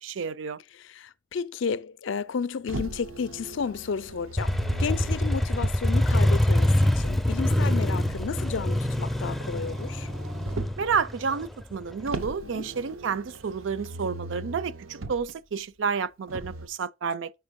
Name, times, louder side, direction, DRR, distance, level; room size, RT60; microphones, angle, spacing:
voice 1, 0.0-0.6 10.8-17.3, right 6 dB, 65° right, 0.4 m, -30 dB
voice 2, 0.8-4.5 4.8-10.1 12.5-12.7, left 6 dB, 65° left, 0.4 m, -32 dB
Motor vehicle (road), 2.7-6.1 7.4-10.9 12.1-15.3 16.3-16.7, right 2 dB, 85° right, 0.8 m, -39 dB
Motorcycle, 4.4-12.0, left 1 dB, ahead, 0.4 m, -25 dB
5.4 x 5.1 x 5.2 m
head